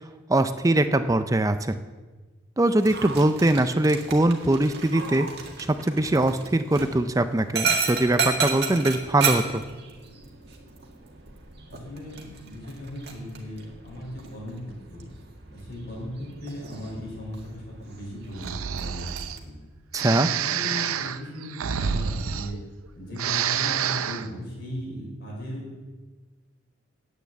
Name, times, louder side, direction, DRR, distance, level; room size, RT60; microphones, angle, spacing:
voice 1, 0.3-1.8 2.6-5.3 5.7-9.6 19.9-20.3, right 1 dB, 15° right, 10 dB, 0.4 m, -22 dB
Dog, 2.8-19.4, right 5 dB, 50° right, 1.8 m, -34 dB
voice 2, 11.7-14.6 14.9-15.0 15.5-19.5 20.0-22.5 22.9-25.7, left 1 dB, 50° left, -3 dB, 5.1 m, -37 dB
Breathing, 18.4-19.4 19.9-22.9 23.1-24.3, right 8 dB, 90° right, 0.6 m, -28 dB
10.0 x 8.6 x 8.2 m, 1.3 s
head